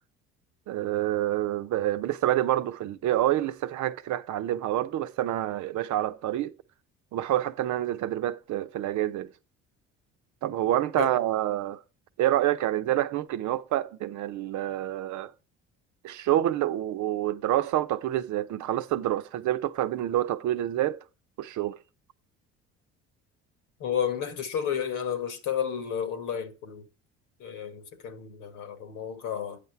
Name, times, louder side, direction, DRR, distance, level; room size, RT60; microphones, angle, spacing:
voice 1, 0.7-6.5 7.1-9.3 10.4-11.8 12.2-15.3 16.0-21.0 21.4-21.8, right 13 dB, 65° right, 0.8 m, -27 dB
voice 2, 23.8-26.9 27.4-29.6, left 8 dB, 75° left, 1.5 m, -32 dB
9.3 x 5.8 x 4.5 m
supercardioid pair, 70°, 32 cm